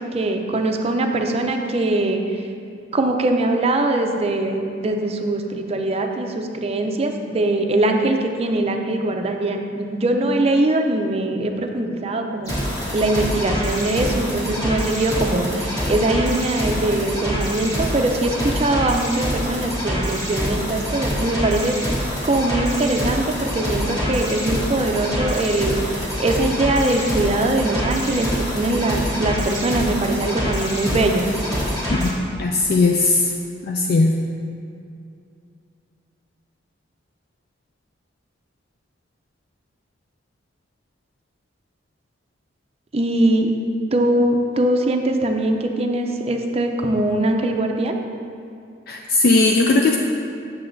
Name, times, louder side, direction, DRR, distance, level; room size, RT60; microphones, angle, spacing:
voice 1, 0.0-2.2 2.9-12.5 12.9-21.8 22.2-25.8 26.2-31.3 42.9-43.5 43.9-47.9, right 2 dB, 35° right, 4 dB, 0.5 m, -22 dB
sound 1, 12.4-32.1, equal, 20° left, 1.6 m, -25 dB
voice 2, 31.9-33.3 33.7-34.2 48.9-50.0, left 3 dB, 55° left, 2 dB, 0.3 m, -18 dB
7.6 x 6.9 x 2.6 m, 2.5 s
head